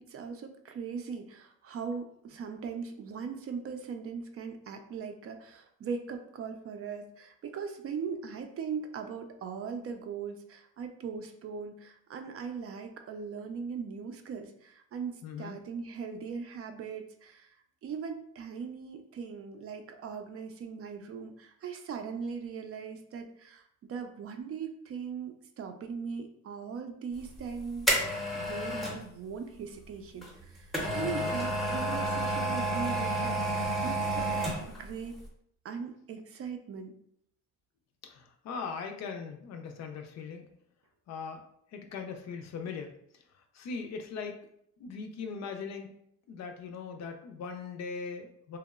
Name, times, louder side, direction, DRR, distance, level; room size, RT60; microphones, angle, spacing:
voice 1, 0.0-17.5 17.8-27.9 28.3-34.4 34.7-35.1 35.6-37.0, right 6 dB, 50° right, 6 dB, 0.4 m, -39 dB
voice 2, 15.2-15.6 31.0-31.4 38.0-40.4 41.1-41.4 41.7-43.0 43.3-44.4 44.8-45.9 46.3-48.6, left 5 dB, 60° left, 5 dB, 0.5 m, -40 dB
sound 1, 27.3-29.0 30.2-34.9 35.2-35.3, right 1 dB, ahead, 0.7 m, -30 dB
2.8 x 2.0 x 2.3 m, 0.71 s
cardioid pair, 90°, 30 cm